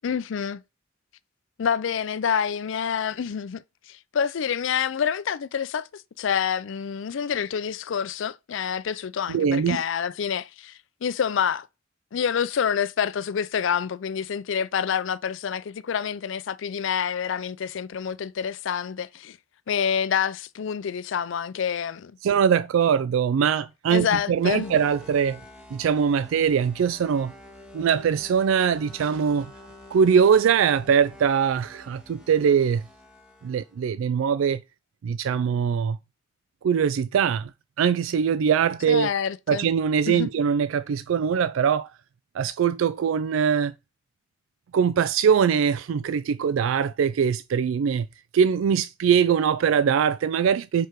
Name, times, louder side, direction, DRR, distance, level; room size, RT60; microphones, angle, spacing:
voice 1, 0.0-0.6 1.6-11.7 12.1-19.4 19.7-22.2 23.9-24.7 38.9-39.7 40.1-40.3, left 7 dB, 70° left, 0.4 m, -27 dB
voice 2, 9.3-9.8 22.2-25.4 25.7-27.3 27.7-29.5 29.9-32.8 33.4-34.6 35.0-36.0 36.6-37.5 37.8-39.1 39.5-41.9 42.3-43.7 44.7-48.1 48.3-50.9, right 7 dB, 85° right, 0.3 m, -22 dB
sound 1, 24.3-33.8, left 1 dB, 5° right, 1.6 m, -48 dB
4.8 x 4.7 x 4.5 m
head